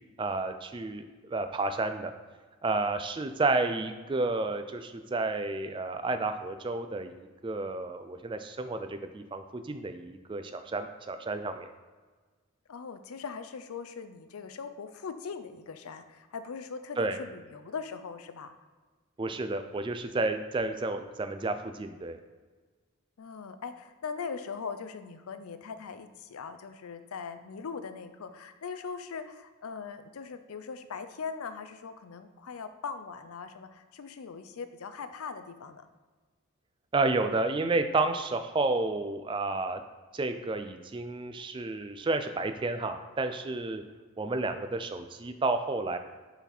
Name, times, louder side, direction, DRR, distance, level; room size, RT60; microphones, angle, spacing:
voice 1, 0.2-2.1 2.6-11.7 17.0-17.2 19.2-22.2 36.9-39.8 40.1-43.8 44.2-46.0, right 3 dB, 20° right, 8 dB, 0.3 m, -31 dB
voice 2, 12.7-18.5 23.2-35.9, left 5 dB, 85° left, 10 dB, 0.5 m, -40 dB
5.7 x 4.1 x 4.3 m, 1.4 s
head